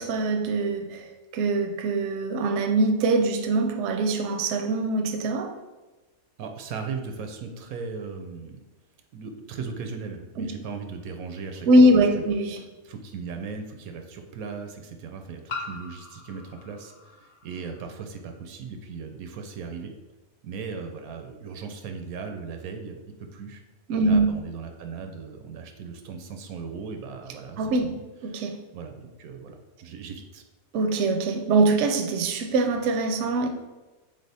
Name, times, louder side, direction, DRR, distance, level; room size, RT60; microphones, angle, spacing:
voice 1, 0.0-5.5 10.4-10.5 11.7-12.6 23.9-24.3 27.6-27.9 28.2-28.6 30.7-33.5, right 2 dB, 65° right, 5 dB, 0.8 m, -23 dB
voice 2, 6.4-8.6 9.1-11.9 12.2-12.3 12.8-19.9 20.4-23.6 24.0-28.0 28.7-30.4, right 5 dB, 85° right, 5 dB, 1.1 m, -37 dB
sound 1, 11.5-11.6 13.3-13.4 15.5-18.0, left 4 dB, 55° left, 0.9 m, -40 dB
3.7 x 3.4 x 4.1 m, 1.1 s
omnidirectional pair, 1.5 m